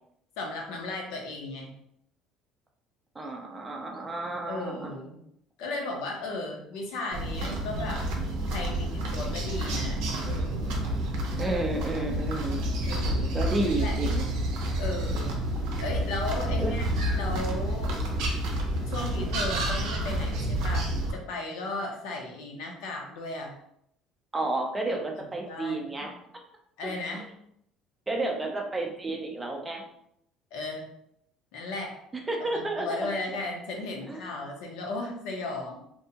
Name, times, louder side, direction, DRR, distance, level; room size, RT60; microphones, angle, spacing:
voice 1, 0.4-1.7 4.5-5.2 5.6-8.1 8.5-10.8 11.4-11.6 12.9-13.3 13.8-14.0 14.8-15.3 15.8-17.9 18.9-20.9 21.3-23.5 24.9-25.9 26.8-27.3 30.5-30.9 31.5-32.0 32.4-35.8, left 2 dB, 85° left, 1 dB, 0.7 m, -35 dB
voice 2, 3.1-4.9 11.3-12.7 13.3-14.3 16.6-16.7 24.3-26.2 26.8-26.9 28.1-29.8 32.3-33.1 34.1-34.3, right 2 dB, 15° right, 1 dB, 0.4 m, -31 dB
sound 1, 7.1-21.1, right 1 dB, 90° right, 0.6 m, -29 dB
2.6 x 2.2 x 2.7 m, 0.74 s
cardioid pair, 170°, 0 cm